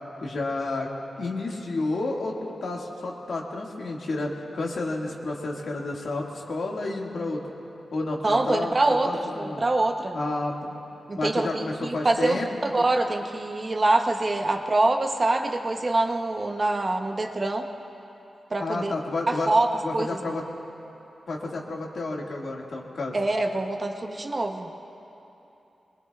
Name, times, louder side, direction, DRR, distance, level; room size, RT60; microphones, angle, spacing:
voice 1, 0.2-0.9 1.2-7.4 7.9-8.7 9.1-9.6 10.1-10.7 11.2-12.5 12.8-12.9 18.6-19.5 19.8-20.4 21.3-23.2, left 2 dB, 65° left, -1 dB, 1.9 m, -30 dB
voice 2, 8.2-10.2 11.1-17.7 18.5-18.9 19.3-19.7 19.9-20.1 23.1-24.7, right 2 dB, 30° right, 4 dB, 0.8 m, -25 dB
24.0 x 22.0 x 2.4 m, 2.9 s
wide cardioid pair, 175°, 0 cm